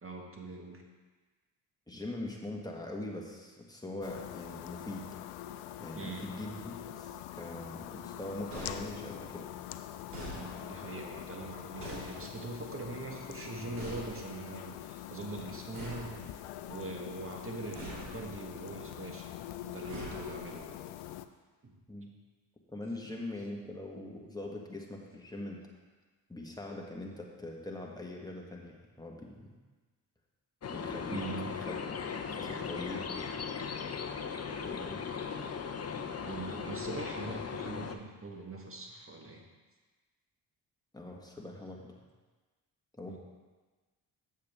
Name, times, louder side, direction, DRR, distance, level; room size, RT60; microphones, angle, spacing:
voice 1, 0.0-0.8 6.0-6.3 10.3-16.1 16.7-20.7 21.6-21.8 31.1-31.5 36.3-39.4 43.1-43.2, right 3 dB, 25° right, 1 dB, 1.7 m, -42 dB
voice 2, 1.9-5.1 5.8-9.5 21.9-22.1 22.7-25.6 26.3-29.5 30.7-31.8 32.2-33.4 34.7-35.0 40.9-41.9 43.0-43.2, left 1 dB, 10° left, -1 dB, 1.7 m, -42 dB
sound 1, 4.0-21.3, left 12 dB, 75° left, 0.5 m, -44 dB
sound 2, 8.5-9.4 10.1-10.9 11.8-12.7 13.8-14.6 15.7-16.8 17.7-18.5 19.9-20.8, right 2 dB, 80° right, 2.5 m, -45 dB
sound 3, 30.6-38.0, left 6 dB, 30° left, 0.7 m, -38 dB
7.4 x 7.4 x 3.7 m, 1.3 s
hypercardioid pair, 45°, 49 cm